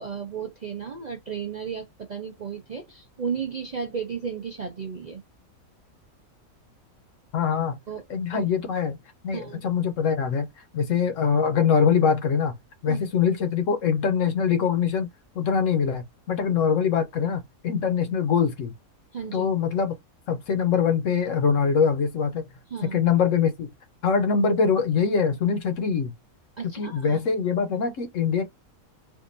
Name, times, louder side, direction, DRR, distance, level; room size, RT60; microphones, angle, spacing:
voice 1, 0.0-5.2 7.9-8.0 8.3-8.5 9.3-9.7 12.9-13.0 19.1-19.5 22.7-23.0 26.6-27.2, right 6 dB, 55° right, 0.5 m, -34 dB
voice 2, 7.3-7.8 8.1-9.0 9.2-10.5 10.7-12.5 12.8-15.1 15.4-18.7 19.3-19.9 20.3-22.4 22.8-23.7 24.0-26.1 26.6-28.5, left 6 dB, 65° left, 1.0 m, -23 dB
3.6 x 2.5 x 2.5 m
omnidirectional pair, 1.5 m